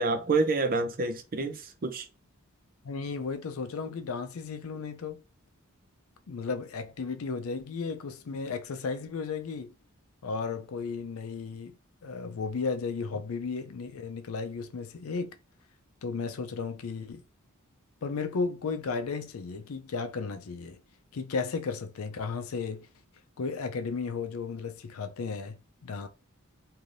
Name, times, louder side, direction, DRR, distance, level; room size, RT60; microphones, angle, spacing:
voice 1, 0.0-2.1, right 3 dB, 45° right, 0.5 m, -28 dB
voice 2, 2.8-5.2 6.3-9.7 10.2-11.8 12.0-15.4 16.0-17.2 18.0-20.8 21.1-22.9 23.4-26.1, left 4 dB, 75° left, 0.5 m, -34 dB
3.2 x 2.7 x 2.5 m
head